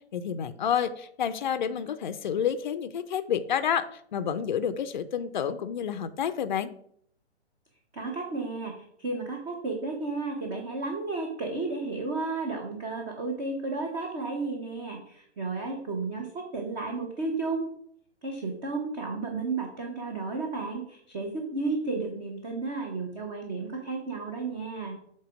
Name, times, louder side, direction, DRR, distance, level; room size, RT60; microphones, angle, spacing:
voice 1, 0.1-6.7, left 8 dB, 45° left, 12 dB, 0.5 m, -29 dB
voice 2, 7.9-8.7 9.0-17.7 18.2-25.0, right 3 dB, 15° right, 1 dB, 0.7 m, -33 dB
7.4 x 3.9 x 5.0 m, 0.66 s
figure-of-eight pair, 130°, 34 cm